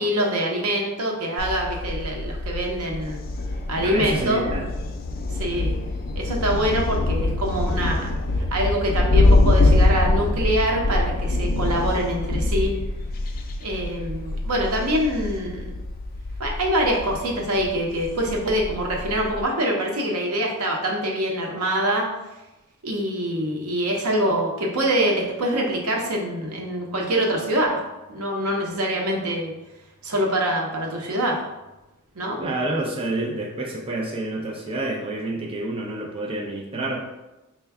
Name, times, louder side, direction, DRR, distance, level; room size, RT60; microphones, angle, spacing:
voice 1, 0.0-3.2 3.7-4.4 5.3-5.7 6.2-8.1 8.5-12.7 13.6-15.7 16.4-22.1 22.8-27.8 28.1-29.5 30.0-31.4 32.2-32.4, right 1 dB, 80° right, 0 dB, 0.8 m, -24 dB
Thunder, 1.4-19.4, left 2 dB, 45° left, 0.4 m, -24 dB
voice 2, 3.8-4.7 32.4-37.0, right 2 dB, 25° right, -2 dB, 0.5 m, -28 dB
4.4 x 2.2 x 3.4 m, 1.0 s
head